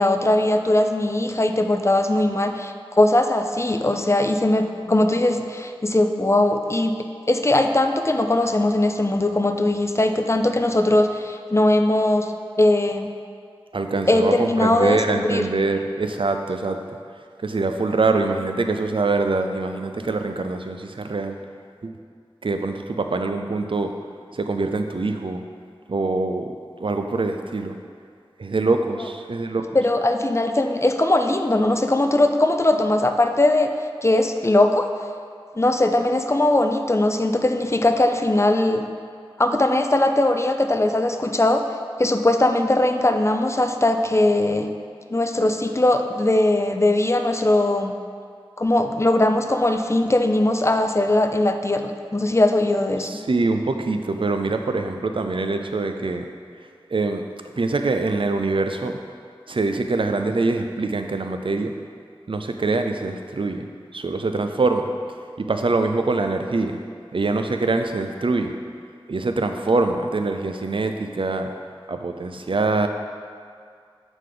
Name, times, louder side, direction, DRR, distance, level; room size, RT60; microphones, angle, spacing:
voice 1, 0.0-6.9 7.3-12.3 12.6-13.1 14.1-15.4 29.7-33.7 34.0-34.9 35.6-38.8 39.4-41.6 42.0-44.7 45.1-47.9 48.6-53.1, left 1 dB, 30° left, 6 dB, 0.5 m, -20 dB
voice 2, 13.7-16.8 17.4-21.4 21.8-21.9 22.4-23.9 24.3-25.4 25.9-27.7 28.4-29.6 53.0-56.2 56.9-57.2 57.6-59.0 59.5-61.8 62.3-63.7 63.9-64.9 65.4-66.8 67.1-68.5 69.1-71.5 71.9-72.9, right 3 dB, 65° right, 6 dB, 0.5 m, -24 dB
7.7 x 5.0 x 3.8 m, 2.2 s
wide cardioid pair, 50°, 9 cm